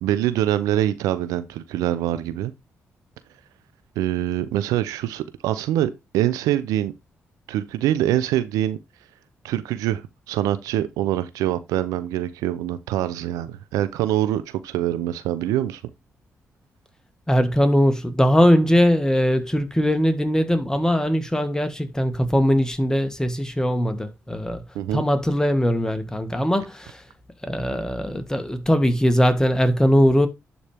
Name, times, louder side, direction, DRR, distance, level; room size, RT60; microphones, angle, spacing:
voice 1, 0.0-2.5 4.0-6.9 7.5-8.8 9.4-15.8 24.7-25.0, right 12 dB, 90° right, 0.6 m, -24 dB
voice 2, 17.3-24.6 24.9-27.0 27.4-30.3, equal, 10° left, 1.8 m, -20 dB
11.0 x 4.4 x 3.5 m
supercardioid pair, 55°, 6 cm